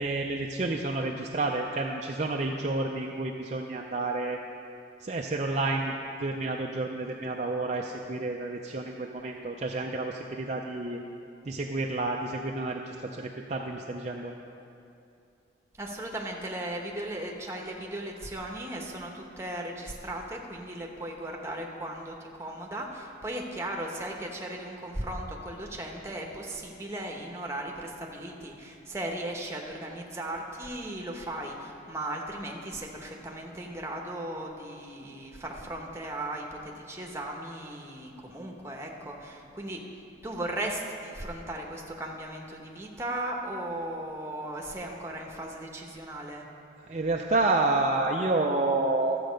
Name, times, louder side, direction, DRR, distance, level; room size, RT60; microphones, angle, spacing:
voice 1, 0.0-4.4 5.0-5.9 6.2-11.0 11.4-14.3 46.8-49.2, right 2 dB, 35° right, 0 dB, 0.5 m, -29 dB
voice 2, 15.8-39.8 40.2-46.5, right 1 dB, 15° right, 0 dB, 1.0 m, -37 dB
13.0 x 7.6 x 5.1 m, 2.6 s
head